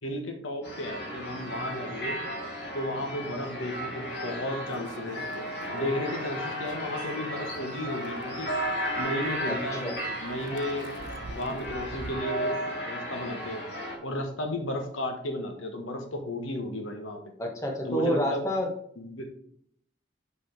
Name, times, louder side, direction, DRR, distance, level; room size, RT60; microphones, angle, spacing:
voice 1, 0.0-2.2 2.7-5.3 5.7-8.5 9.0-10.9 11.3-12.6 12.8-13.6 14.0-17.2 17.9-18.5 19.0-19.3, left 1 dB, 85° left, 4 dB, 1.3 m, -34 dB
sound 1, 0.6-14.0, equal, 60° left, 2.2 m, -34 dB
Microwave oven, 4.7-12.1, right 3 dB, 70° right, 0.6 m, -46 dB
voice 2, 9.5-9.9 17.4-18.7, equal, 15° left, 0 dB, 1.2 m, -29 dB
6.1 x 5.7 x 4.5 m, 0.68 s
head